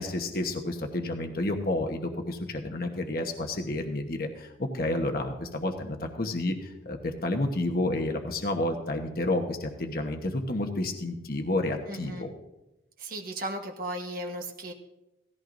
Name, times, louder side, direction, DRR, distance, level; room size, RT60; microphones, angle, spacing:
voice 1, 0.0-12.3, left 1 dB, 50° left, 3 dB, 1.1 m, -30 dB
voice 2, 11.9-12.2 13.0-14.7, right 1 dB, 50° right, 2 dB, 1.2 m, -36 dB
17.5 x 14.0 x 2.6 m, 0.97 s
head